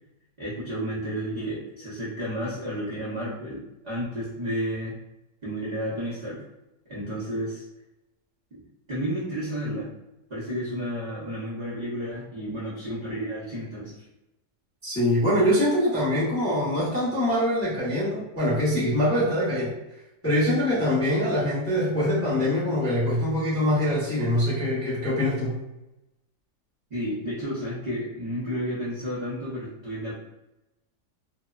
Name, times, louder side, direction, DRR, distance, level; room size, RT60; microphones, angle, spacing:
voice 1, 0.4-4.9 5.4-6.4 6.9-7.6 8.9-9.9 10.3-13.9 26.9-30.1, equal, 55° right, -9 dB, 0.4 m, -31 dB
voice 2, 14.8-19.7 20.2-25.5, left 1 dB, 15° left, -10 dB, 0.4 m, -24 dB
2.8 x 2.0 x 2.3 m, 0.92 s
omnidirectional pair, 1.8 m